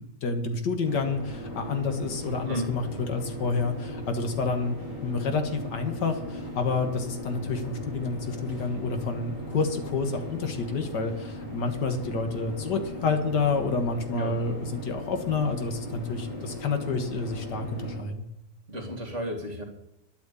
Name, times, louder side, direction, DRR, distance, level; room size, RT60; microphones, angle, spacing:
voice 1, 0.0-4.8 5.0-18.3, left 4 dB, 80° left, 6 dB, 2.1 m, -29 dB
sound 1, 0.8-18.0, left 1 dB, 35° left, 6.4 m, -38 dB
voice 2, 18.7-19.6, equal, 45° right, 4 dB, 2.6 m, -33 dB
10.5 x 8.8 x 8.4 m, 0.88 s
omnidirectional pair, 1.8 m